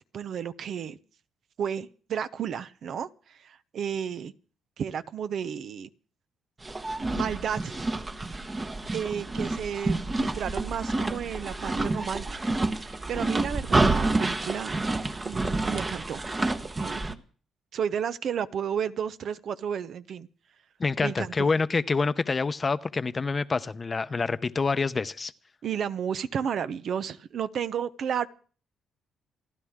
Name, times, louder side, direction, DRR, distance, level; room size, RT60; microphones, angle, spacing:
voice 1, 0.1-1.0 1.6-4.3 4.8-5.9 7.1-7.7 8.9-12.5 12.8-14.9 15.2-16.3 16.8-17.2 17.7-20.3 21.0-21.5 25.6-28.3, right 8 dB, 65° right, 0.7 m, -32 dB
sound 1, 6.6-17.1, right 2 dB, 25° right, 1.1 m, -28 dB
voice 2, 20.8-25.3, left 4 dB, 30° left, 0.7 m, -27 dB
28.0 x 11.0 x 3.6 m
cardioid pair, 90°, 0 cm